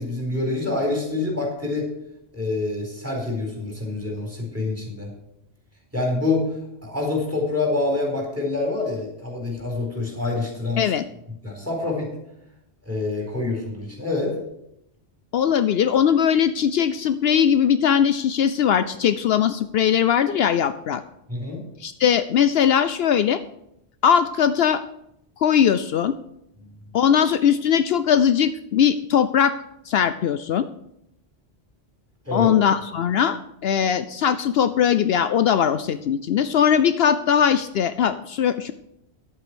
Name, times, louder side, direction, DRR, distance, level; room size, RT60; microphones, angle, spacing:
voice 1, 0.0-1.9 2.3-5.1 5.9-6.5 6.8-10.9 11.4-12.1 12.9-14.3 21.3-21.6 32.3-32.5, left 3 dB, 15° right, -1 dB, 4.3 m, -26 dB
voice 2, 15.3-21.0 21.8-23.4 24.0-24.8 25.4-26.2 26.9-29.5 29.9-30.7 32.3-38.7, left 8 dB, 70° left, 12 dB, 0.8 m, -20 dB
11.0 x 8.4 x 6.2 m, 0.79 s
omnidirectional pair, 1.1 m